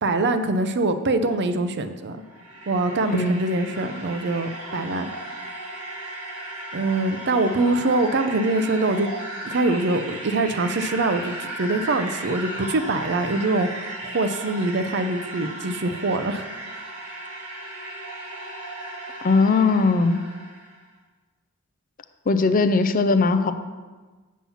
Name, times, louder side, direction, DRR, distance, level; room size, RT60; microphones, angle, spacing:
voice 1, 0.0-2.2 2.7-5.1 6.7-9.1 9.4-16.5, right 2 dB, 50° right, 9 dB, 0.6 m, -24 dB
sound 1, 2.1-20.8, right 1 dB, 85° right, 1.9 m, -36 dB
voice 2, 3.1-3.4 19.2-20.2 22.3-23.5, left 3 dB, 40° left, 10 dB, 0.5 m, -19 dB
7.3 x 5.6 x 7.1 m, 1.3 s
head